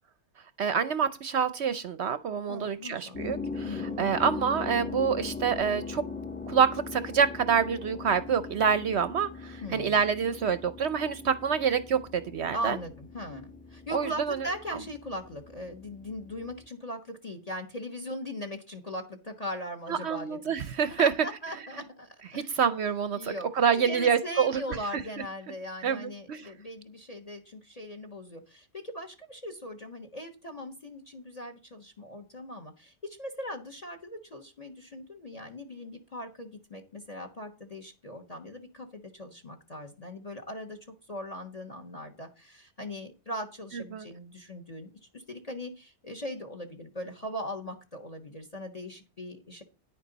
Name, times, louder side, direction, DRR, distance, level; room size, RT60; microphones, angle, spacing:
voice 1, 0.6-6.0 6.5-12.8 13.9-14.4 19.9-21.1 22.3-24.6 25.8-26.5 43.9-44.1, right 7 dB, 60° right, 13 dB, 0.8 m, -27 dB
voice 2, 2.5-3.3 3.6-4.1 9.6-10.0 12.5-20.4 20.7-22.6 23.1-40.8 41.1-49.6, equal, 30° left, 7 dB, 1.2 m, -40 dB
sound 1, 3.1-16.7, left 4 dB, 5° left, 0.9 m, -40 dB
10.0 x 9.4 x 3.9 m, 0.29 s
omnidirectional pair, 1.5 m